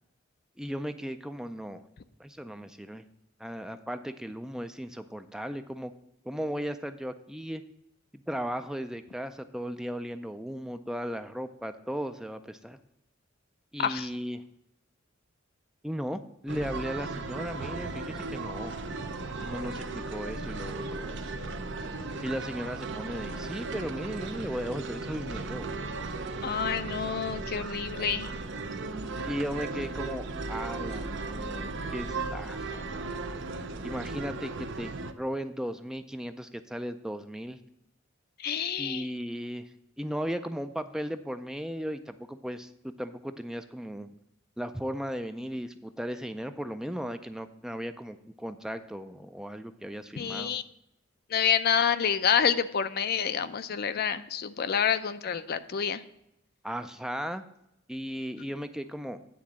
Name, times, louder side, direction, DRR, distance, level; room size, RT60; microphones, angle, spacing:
voice 1, 0.6-1.8 2.2-3.0 3.4-5.9 6.2-7.6 8.1-12.8 13.7-14.4 15.8-19.0 19.4-21.2 22.2-25.8 29.2-32.9 33.8-37.6 38.8-39.7 40.0-44.1 44.6-50.6 56.6-57.4 57.9-59.2, equal, 5° right, 9 dB, 0.4 m, -36 dB
sound 1, 16.5-35.1, right 3 dB, 65° right, 0.7 m, -36 dB
voice 2, 26.4-28.4 38.4-39.1 50.2-50.6 51.3-56.0, left 7 dB, 50° left, 12 dB, 0.5 m, -28 dB
9.4 x 3.8 x 7.2 m, 0.82 s
head